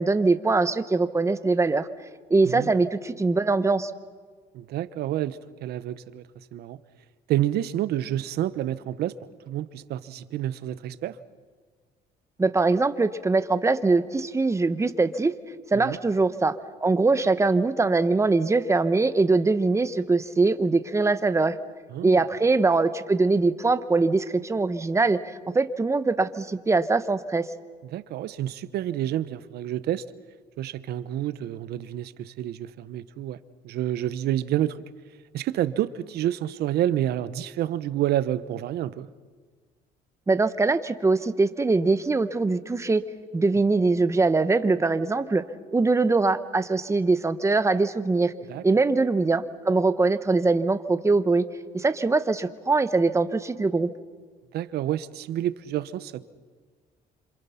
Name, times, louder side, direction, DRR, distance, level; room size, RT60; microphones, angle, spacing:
voice 1, 0.0-1.9 2.3-3.9 12.4-15.3 15.7-21.6 22.0-27.5 40.3-43.0 43.3-45.4 45.7-48.3 48.6-51.4 51.7-53.9, right 3 dB, 15° right, 11 dB, 1.1 m, -22 dB
voice 2, 4.5-6.2 6.5-6.8 7.3-9.1 9.5-11.2 15.7-16.0 21.9-22.2 27.8-30.0 30.6-33.4 33.6-34.8 35.3-39.1 48.5-48.6 54.5-56.2, right 12 dB, 70° right, 14 dB, 1.0 m, -29 dB
27.0 x 27.0 x 5.8 m, 1.5 s
cardioid pair, 110°, 17 cm